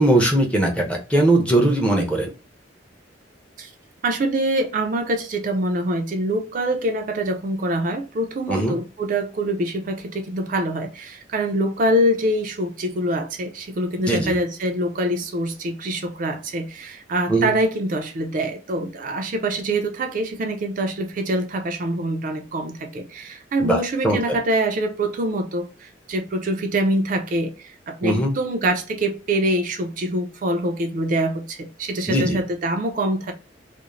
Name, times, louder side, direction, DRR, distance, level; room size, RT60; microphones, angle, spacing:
voice 1, 0.0-2.3 8.5-8.8 14.1-14.4 17.3-17.5 23.6-24.4 28.0-28.3 32.1-32.4, right 1 dB, 5° left, 0.6 m, -20 dB
voice 2, 4.0-33.3, right 1 dB, 45° right, 0.4 m, -24 dB
2.4 x 2.0 x 3.0 m
head